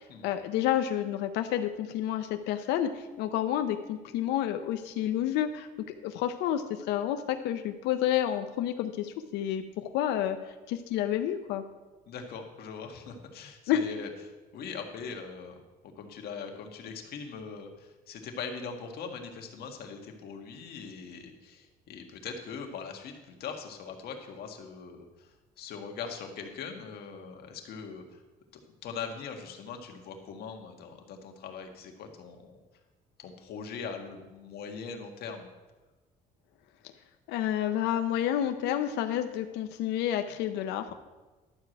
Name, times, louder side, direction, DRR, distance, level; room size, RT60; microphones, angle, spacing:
voice 1, 0.0-5.7 6.0-10.4 10.7-11.6 13.7-13.8 37.3-40.9, left 11 dB, 90° left, 7 dB, 0.7 m, -29 dB
voice 2, 12.1-14.1 14.5-15.6 15.9-28.2 28.5-32.6 33.2-35.5, left 6 dB, 70° left, 3 dB, 1.7 m, -41 dB
11.5 x 4.8 x 7.8 m, 1.2 s
cardioid pair, 110°, 17 cm